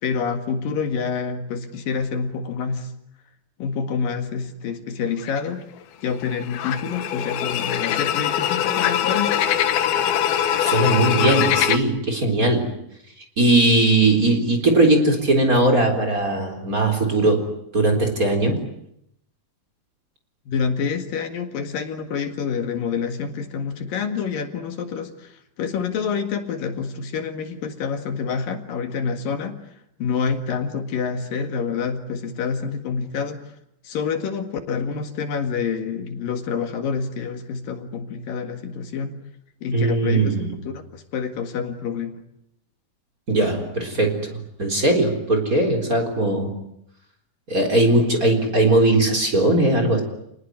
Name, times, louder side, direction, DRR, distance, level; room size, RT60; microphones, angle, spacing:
voice 1, 0.0-2.9 3.6-5.6 6.0-9.4 20.5-29.7 30.0-33.6 33.8-39.2 39.6-40.4 40.6-42.2, left 6 dB, 70° left, 7 dB, 3.6 m, -27 dB
sound 1, 5.2-5.5 6.2-11.8, left 9 dB, 85° left, 3.2 m, -22 dB
voice 2, 10.6-12.7 13.4-18.6 39.7-40.5 43.3-44.3 44.6-46.5 47.5-50.0, right 2 dB, 25° right, 3 dB, 4.1 m, -19 dB
29.0 x 19.5 x 9.5 m, 0.77 s
omnidirectional pair, 4.2 m